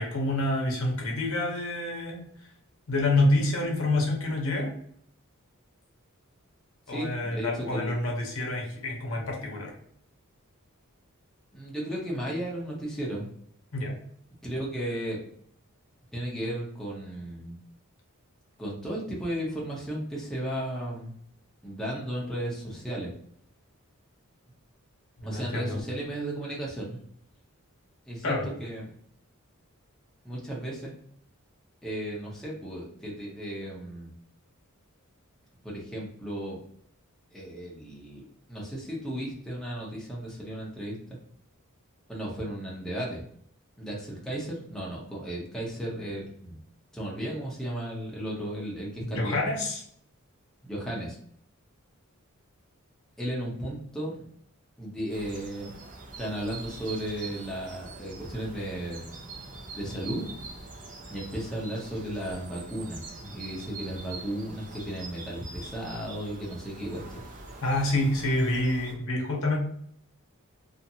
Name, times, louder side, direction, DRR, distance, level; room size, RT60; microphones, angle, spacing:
voice 1, 0.0-2.2 2.9-4.8 6.9-9.7 13.7-13.9 25.2-25.8 28.2-28.5 49.0-49.8 67.6-69.6, left 2 dB, 65° left, -1 dB, 0.8 m, -27 dB
voice 2, 6.9-8.0 11.5-13.3 14.4-15.2 16.1-17.6 18.6-21.1 21.6-23.1 25.2-27.0 28.1-29.0 30.2-30.9 31.8-34.1 35.6-36.6 37.3-38.2 38.5-41.0 42.1-43.2 43.8-46.6 46.9-49.4 50.6-51.2 53.2-54.2 54.8-55.7 56.2-59.1 59.7-60.3 61.1-67.2, right 1 dB, ahead, -5 dB, 0.6 m, -35 dB
sound 1, 55.1-68.9, right 3 dB, 35° right, 0.5 m, -44 dB
2.6 x 2.5 x 2.7 m, 0.65 s
head